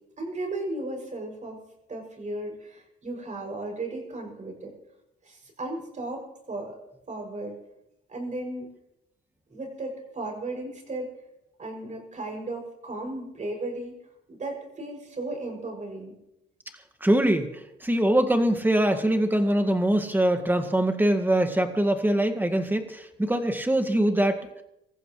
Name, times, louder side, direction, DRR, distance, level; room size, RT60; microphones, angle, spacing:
voice 1, 0.2-1.6 1.9-4.7 5.2-6.8 7.1-7.6 8.1-8.7 9.5-11.1 11.6-13.9 14.3-16.1, right 2 dB, 40° right, 1 dB, 7.0 m, -35 dB
voice 2, 17.0-17.5 17.8-24.4, right 1 dB, 10° right, 6 dB, 2.0 m, -23 dB
25.0 x 14.5 x 3.2 m, 0.87 s
cardioid pair, 90°, 20 cm